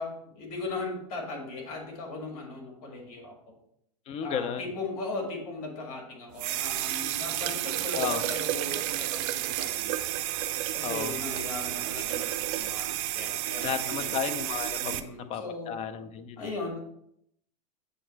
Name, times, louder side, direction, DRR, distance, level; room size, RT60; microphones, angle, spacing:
voice 1, 0.0-3.5 4.2-10.0 10.7-14.1 14.8-15.7 16.4-16.8, left 3 dB, 65° left, 1 dB, 1.7 m, -38 dB
voice 2, 4.1-4.6 7.9-8.3 10.8-11.2 13.6-15.0 15.3-16.5, left 7 dB, 30° left, 11 dB, 0.5 m, -33 dB
sound 1, 6.4-15.0, right 14 dB, 55° right, 0.5 m, -31 dB
7.8 x 3.0 x 3.9 m, 0.74 s
hypercardioid pair, 120°, 20 cm